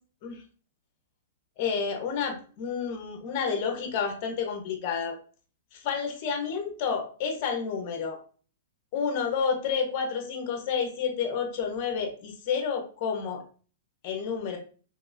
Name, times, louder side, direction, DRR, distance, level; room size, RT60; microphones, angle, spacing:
voice 1, 1.6-5.2 5.7-8.2 8.9-13.4 14.0-14.6, left 6 dB, 45° left, 4 dB, 1.3 m, -30 dB
4.5 x 3.7 x 2.7 m, 0.40 s
hypercardioid pair, 120°, 0 cm